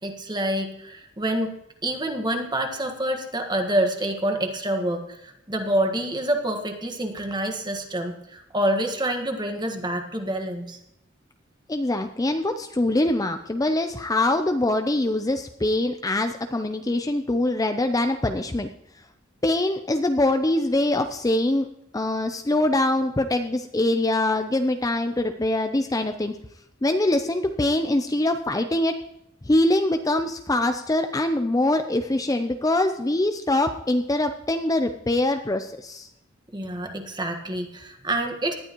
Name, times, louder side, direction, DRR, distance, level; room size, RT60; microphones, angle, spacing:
voice 1, 0.0-1.6 1.8-10.8 36.5-38.5, right 1 dB, 20° right, 5 dB, 1.6 m, -27 dB
voice 2, 11.7-18.7 19.4-21.7 21.9-26.4 26.8-29.0 29.4-36.1, left 1 dB, 20° left, 7 dB, 0.5 m, -23 dB
19.0 x 11.5 x 3.0 m, 0.80 s
head